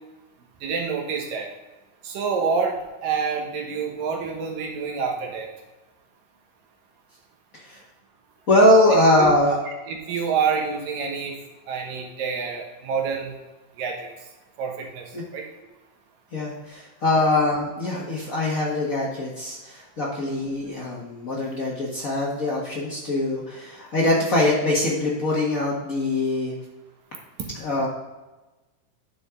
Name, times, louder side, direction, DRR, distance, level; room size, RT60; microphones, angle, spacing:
voice 1, 0.6-1.5 2.0-2.7 3.0-5.5 9.2-9.3 9.9-11.4 11.7-13.3 13.8-14.1 14.6-15.0 15.3-15.4, right 6 dB, 75° right, 1 dB, 2.9 m, -27 dB
voice 2, 8.5-9.6 15.1-15.2 16.3-26.5 27.5-27.9, left 1 dB, 70° left, -5 dB, 0.7 m, -22 dB
10.5 x 6.5 x 3.7 m, 1.1 s
omnidirectional pair, 4.1 m